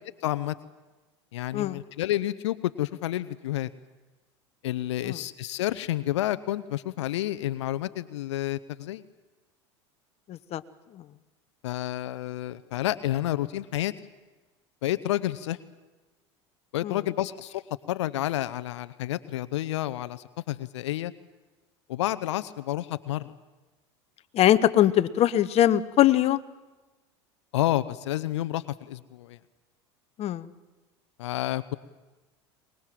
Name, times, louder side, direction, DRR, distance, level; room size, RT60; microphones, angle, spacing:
voice 1, 0.2-0.6 1.3-3.7 4.6-9.0 11.6-13.9 14.8-15.6 16.7-17.6 17.9-21.1 21.9-23.3 27.5-29.4 31.2-31.8, left 14 dB, 80° left, 15 dB, 0.8 m, -30 dB
voice 2, 10.3-10.6 16.8-17.0 24.3-26.4 30.2-30.5, left 12 dB, 45° left, 13 dB, 1.0 m, -22 dB
24.0 x 21.0 x 7.6 m, 1.2 s
hypercardioid pair, 90°, 15 cm